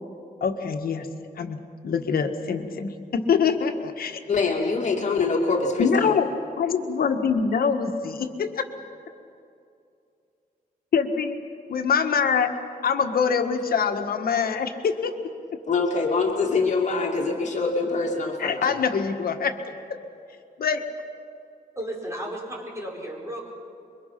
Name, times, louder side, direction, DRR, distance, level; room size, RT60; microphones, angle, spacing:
voice 1, 0.4-1.1 1.4-1.6 1.8-4.2 5.8-6.3 6.6-8.7 10.9-11.4 11.7-12.5 12.8-15.2 18.4-19.6 19.9-20.0 20.6-20.8, left 6 dB, 70° left, 6 dB, 1.6 m, -24 dB
voice 2, 4.3-6.2 15.7-18.8, left 4 dB, 50° left, 0 dB, 2.5 m, -24 dB
voice 3, 21.7-23.5, right 1 dB, 20° right, -2 dB, 4.8 m, -34 dB
26.5 x 23.0 x 5.9 m, 2.5 s
wide cardioid pair, 135°, 16 cm